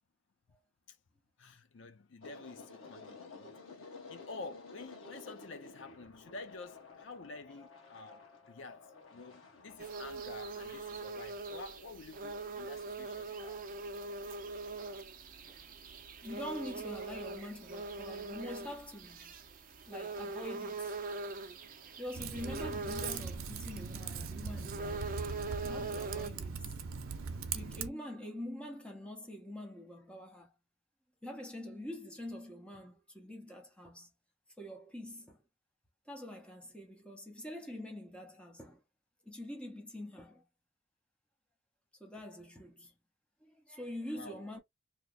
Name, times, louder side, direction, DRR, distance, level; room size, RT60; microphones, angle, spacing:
voice 1, 1.4-13.7 44.1-44.4, left 3 dB, 65° left, 0.5 m, -49 dB
sound 1, 2.2-10.1, left 4 dB, 80° left, 1.3 m, -52 dB
sound 2, 9.8-26.3, right 3 dB, 40° right, 0.6 m, -42 dB
voice 2, 16.2-19.3 19.9-21.0 21.9-25.1 25.6-26.8 27.5-30.5 31.2-34.1 34.6-35.4 36.1-38.8 39.2-40.4 42.0-42.9 43.4-44.6, left 1 dB, 5° left, 0.8 m, -45 dB
Typing, 22.1-27.9, right 5 dB, 85° right, 0.6 m, -40 dB
2.9 x 2.1 x 3.7 m
head